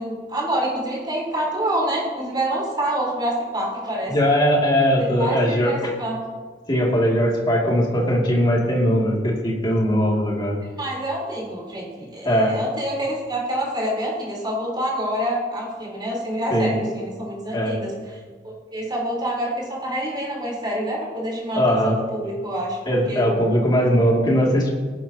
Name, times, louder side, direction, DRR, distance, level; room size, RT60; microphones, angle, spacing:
voice 1, 0.0-4.1 5.0-6.2 10.8-17.9 18.4-23.3, right 1 dB, 25° right, -5 dB, 4.2 m, -27 dB
voice 2, 4.1-5.9 6.7-10.5 12.2-12.5 16.5-16.7 17.5-17.7 21.5-22.0 22.9-24.7, equal, 25° left, -3 dB, 2.8 m, -20 dB
18.5 x 11.0 x 3.0 m, 1.5 s
head